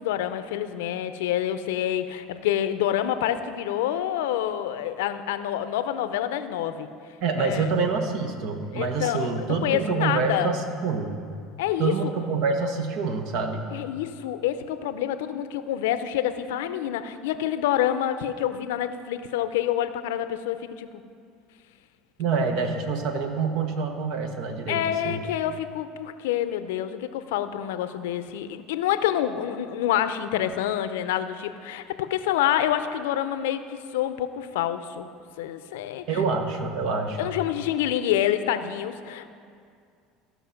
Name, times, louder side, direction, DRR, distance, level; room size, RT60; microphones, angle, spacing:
voice 1, 0.0-6.9 7.4-7.7 8.7-10.5 11.6-12.1 13.7-21.0 24.7-35.1 35.4-36.2 37.2-39.3, left 11 dB, 85° left, 11 dB, 0.5 m, -27 dB
voice 2, 7.2-11.1 11.8-13.6 22.2-25.2 36.1-37.2, right 4 dB, 65° right, 6 dB, 1.2 m, -26 dB
15.0 x 5.5 x 5.8 m, 2.3 s
supercardioid pair, 100°, 0 cm